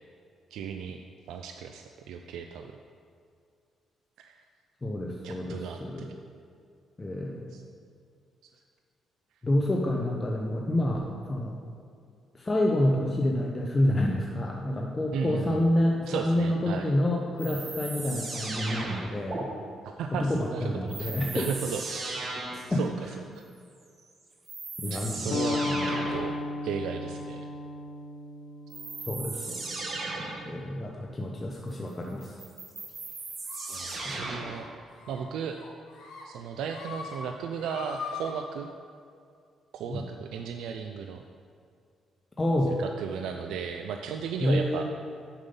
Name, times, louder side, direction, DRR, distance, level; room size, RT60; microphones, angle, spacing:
voice 1, 0.5-1.0 1.3-2.7 4.2-4.4 5.2-6.1 7.5-7.6 15.1-15.6 16.1-16.9 19.8-22.2 22.7-22.9 23.4-23.5 24.9-25.6 25.9-26.4 26.6-27.5 33.5-34.6 35.1-35.6 36.2-38.7 39.7-41.2 42.7-44.9, right 7 dB, 85° right, 5 dB, 0.4 m, -35 dB
voice 2, 4.8-6.2 7.0-7.5 9.4-11.6 12.3-19.5 20.2-21.5 22.5-22.8 24.8-26.0 29.1-29.9 30.5-32.3 34.0-34.3 39.9-40.0 42.4-42.7 44.4-44.9, left 1 dB, 20° left, -1 dB, 0.7 m, -28 dB
sound 1, 17.4-19.4 20.9-22.7 24.0-24.1 24.5-26.3 28.7-30.5 32.2-34.7, right 3 dB, 45° right, 1.2 m, -36 dB
sound 2, 25.3-30.5, left 2 dB, 60° left, 0.5 m, -35 dB
sound 3, 33.5-34.1 34.4-34.6 34.9-35.2 35.5-36.2 36.6-37.2 37.5-38.3, left 6 dB, 85° left, 1.4 m, -41 dB
7.1 x 5.4 x 5.4 m, 2.3 s
cardioid pair, 90°, 0 cm